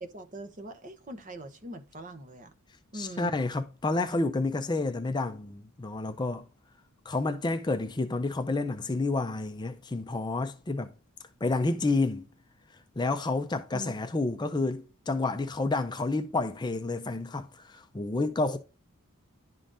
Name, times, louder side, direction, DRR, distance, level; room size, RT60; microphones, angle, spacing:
voice 1, 0.0-2.5 2.9-3.4 13.7-13.9, right 2 dB, 35° right, 0.8 m, -42 dB
voice 2, 2.9-6.4 7.1-10.9 11.4-12.3 13.0-18.6, left 3 dB, 20° left, 0.4 m, -29 dB
11.0 x 3.8 x 2.5 m
head